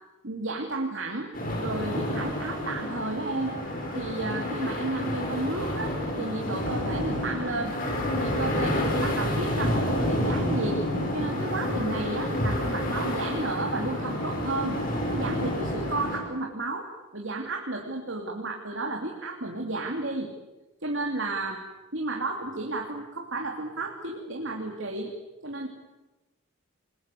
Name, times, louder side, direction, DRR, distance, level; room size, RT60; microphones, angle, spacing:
voice 1, 0.2-1.3 1.6-3.6 3.9-7.7 8.2-10.8 11.1-14.8 15.1-16.9 17.1-20.3 20.8-21.6 21.9-25.1 25.4-25.7, right 2 dB, 60° right, 1 dB, 3.0 m, -32 dB
sound 1, 1.3-16.2, left 1 dB, 40° left, 5.9 m, -29 dB
29.0 x 21.0 x 8.5 m, 1.1 s
head